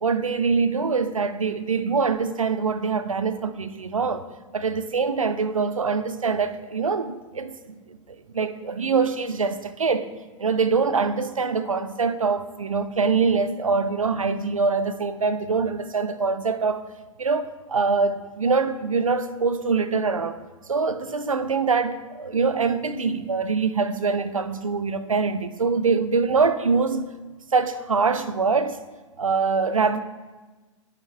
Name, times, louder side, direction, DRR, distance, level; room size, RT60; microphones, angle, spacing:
voice 1, 0.0-4.2 4.5-8.0 8.3-10.1 10.4-16.8 17.2-20.4 20.7-27.1 27.5-28.8 29.2-30.0, right 4 dB, 90° right, 12 dB, 0.5 m, -24 dB
11.0 x 5.7 x 3.3 m, 1.2 s
figure-of-eight pair, 100°, 17 cm